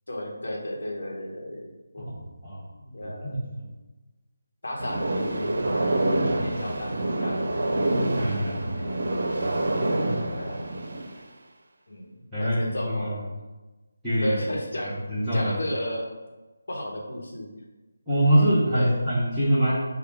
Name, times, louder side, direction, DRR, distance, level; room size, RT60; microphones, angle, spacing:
voice 1, 0.1-2.1 2.8-3.4 4.6-7.5 8.7-9.0 10.3-10.7 11.9-13.2 14.2-14.9 15.3-16.0 16.7-17.5 18.7-19.0, left 1 dB, 65° left, -1 dB, 1.1 m, -34 dB
voice 2, 2.0-2.7 3.0-3.6 8.2-8.9 12.3-13.2 14.0-14.4 15.1-15.5 18.1-19.7, equal, 5° right, -15 dB, 1.0 m, -24 dB
sound 1, 4.8-11.2, right 1 dB, 55° right, 0.5 m, -27 dB
4.6 x 2.2 x 4.7 m, 1.2 s
figure-of-eight pair, 155°, 0 cm